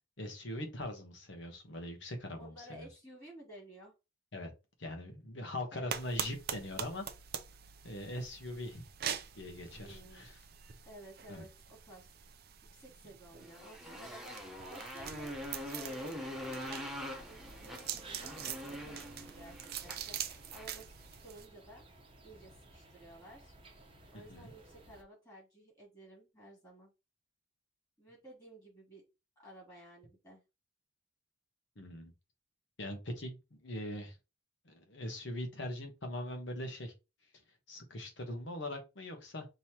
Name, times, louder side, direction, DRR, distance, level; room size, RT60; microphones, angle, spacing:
voice 1, 0.2-2.9 4.3-4.5 4.8-7.0 7.8-8.8 9.3-10.4 11.3-11.4 24.1-24.5 31.8-32.1 32.8-34.1 34.6-36.9 37.7-39.5, left 1 dB, 60° left, 1.2 m, -41 dB
voice 2, 2.4-3.9 5.7-5.9 9.8-10.3 10.8-12.1 12.7-15.3 15.7-21.9 22.2-23.5 24.1-26.9 28.0-29.0 29.4-30.4, right 1 dB, 20° left, 2.6 m, -54 dB
sound 1, 5.9-21.5, right 9 dB, 50° right, 0.5 m, -44 dB
Motorcycle, 13.4-20.8, equal, ahead, 1.0 m, -44 dB
sound 2, 17.2-25.0, right 2 dB, 25° right, 0.9 m, -57 dB
5.4 x 3.0 x 2.9 m
head